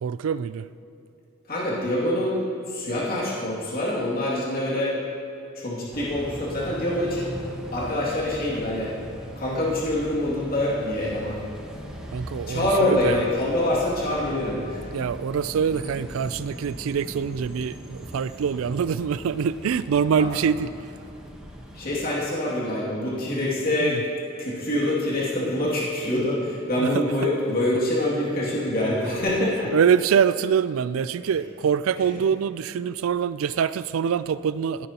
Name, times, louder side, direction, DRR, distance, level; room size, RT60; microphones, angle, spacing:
voice 1, 0.0-0.7 12.1-13.2 14.9-20.7 23.8-24.0 26.8-27.0 29.7-34.9, right 7 dB, 90° right, 16 dB, 0.3 m, -24 dB
voice 2, 1.5-2.4 2.7-4.9 5.5-7.4 7.7-8.9 9.4-11.4 12.5-14.9 20.2-20.3 21.7-24.0 24.4-29.7, left 1 dB, 45° left, -6 dB, 2.4 m, -25 dB
sound 1, 5.9-22.0, equal, 5° right, 1.1 m, -39 dB
16.5 x 9.3 x 2.9 m, 2.8 s
head